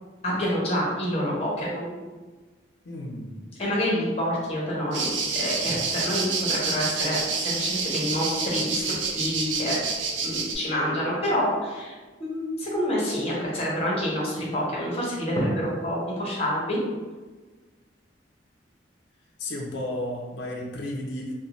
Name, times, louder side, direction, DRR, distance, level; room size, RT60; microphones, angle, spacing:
voice 1, 0.2-1.9 3.6-9.8 10.2-11.9 12.2-16.8, equal, 35° left, -5 dB, 0.9 m, -27 dB
voice 2, 2.8-3.4 19.4-21.3, left 1 dB, 70° left, -1 dB, 0.4 m, -33 dB
sound 1, 4.9-10.6, right 4 dB, 75° right, 0.4 m, -28 dB
2.6 x 2.1 x 3.0 m, 1.3 s
head